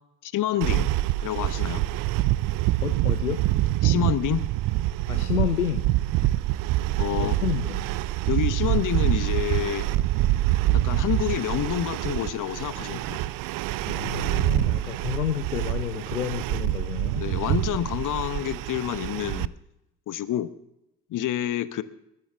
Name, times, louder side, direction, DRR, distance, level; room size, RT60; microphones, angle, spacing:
voice 1, 0.2-0.9 1.2-1.8 3.8-4.4 7.0-7.4 8.3-9.9 10.7-13.2 17.2-19.5 20.1-20.5 21.1-21.8, left 12 dB, 45° left, 15 dB, 1.0 m, -28 dB
sound 1, 0.6-19.5, right 15 dB, 50° right, 0.6 m, -26 dB
voice 2, 2.8-3.4 5.1-5.9 7.2-7.8 13.9-17.3, left 10 dB, 85° left, 9 dB, 0.7 m, -30 dB
21.0 x 12.5 x 3.5 m, 0.85 s
figure-of-eight pair, 50°, 43 cm